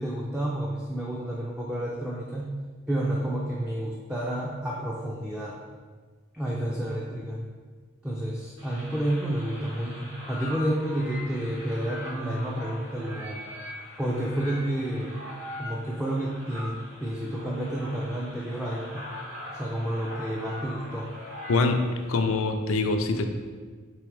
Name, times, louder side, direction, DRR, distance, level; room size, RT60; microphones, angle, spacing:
voice 1, 0.0-2.5 2.9-5.6 6.3-7.4 8.0-13.4 14.0-15.2 15.6-19.1 19.6-21.1, right 1 dB, 5° right, -4 dB, 0.4 m, -30 dB
sound 1, 8.6-22.1, left 1 dB, 65° right, 1.2 m, -41 dB
voice 2, 21.5-21.8 22.1-23.3, left 3 dB, 70° left, 6 dB, 0.4 m, -24 dB
3.5 x 3.4 x 4.6 m, 1.5 s
head